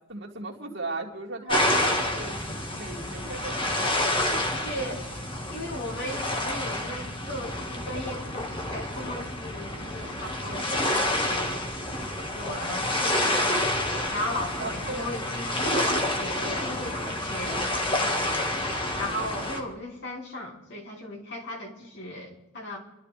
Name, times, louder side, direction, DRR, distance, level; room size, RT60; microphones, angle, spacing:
voice 1, 0.1-4.5 4.8-4.9 14.6-16.1, right 3 dB, 60° right, 0 dB, 2.6 m, -38 dB
sound 1, 1.5-19.6, left 1 dB, 25° left, 1.7 m, -28 dB
voice 2, 4.5-5.0 5.5-11.7 12.4-13.7 14.1-18.2 19.0-22.8, left 1 dB, 55° left, -1 dB, 3.4 m, -37 dB
29.0 x 12.5 x 3.4 m, 0.96 s
head